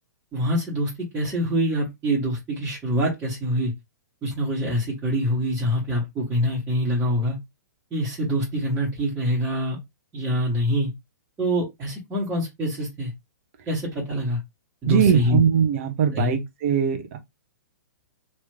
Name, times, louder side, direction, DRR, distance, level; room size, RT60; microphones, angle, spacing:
voice 1, 0.3-3.7 4.2-7.4 7.9-9.8 10.1-10.9 11.4-13.1 13.7-14.4 14.8-15.4 16.1-16.4, equal, 20° right, 1.8 m, -25 dB
voice 2, 14.9-17.2, right 8 dB, 45° right, 1.0 m, -21 dB
3.2 x 3.1 x 3.4 m
figure-of-eight pair, 115°, 10 cm